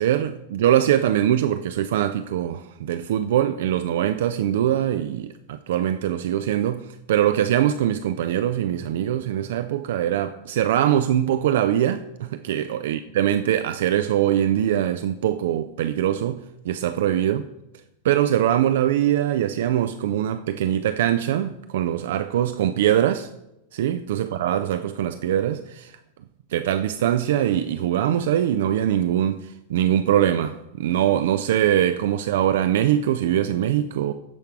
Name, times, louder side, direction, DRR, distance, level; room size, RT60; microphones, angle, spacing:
voice 1, 0.0-17.4 18.0-23.3 23.7-25.9 26.5-34.1, right 11 dB, 55° right, 0.4 m, -22 dB
15.0 x 5.8 x 4.6 m
figure-of-eight pair, 90°, 0 cm